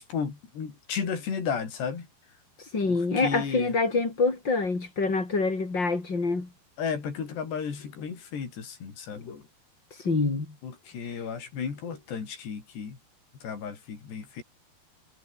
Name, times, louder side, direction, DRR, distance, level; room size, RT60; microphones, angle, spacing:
voice 1, 0.0-2.1 2.8-3.8 6.8-9.4 10.6-13.0 13.4-14.4, left 6 dB, 75° left, 7.1 m, -34 dB
voice 2, 2.7-6.5 10.0-10.5, left 3 dB, 25° left, 5.1 m, -26 dB
omnidirectional pair, 4.9 m